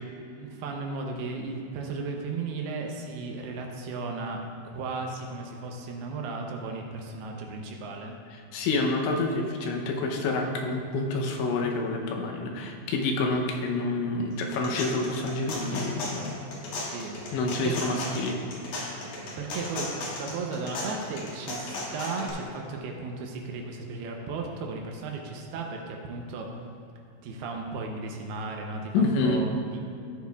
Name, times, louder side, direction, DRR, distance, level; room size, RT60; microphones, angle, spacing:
voice 1, 0.3-8.1 16.8-17.2 17.6-17.8 19.4-26.5 27.2-29.8, right 3 dB, 80° right, 1 dB, 2.4 m, -35 dB
voice 2, 8.5-16.5 17.3-18.4 28.9-29.4, left 2 dB, 80° left, 1 dB, 3.0 m, -28 dB
sound 1, 14.3-22.3, left 2 dB, 65° left, 3.1 m, -36 dB
14.0 x 8.4 x 2.4 m, 2.6 s
omnidirectional pair, 5.3 m